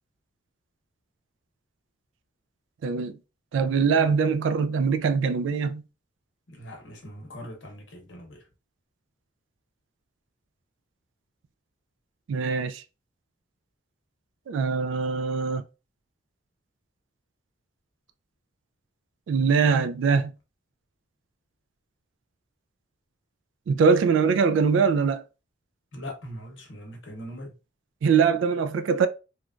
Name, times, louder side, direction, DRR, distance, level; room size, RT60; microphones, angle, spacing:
voice 1, 2.8-3.1 3.5-5.8 12.3-12.8 14.5-15.6 19.3-20.3 23.7-25.2 28.0-29.1, right 5 dB, 75° right, 0.3 m, -22 dB
voice 2, 6.5-8.4 25.9-27.5, equal, 70° left, 0.8 m, -41 dB
3.1 x 2.2 x 2.4 m
head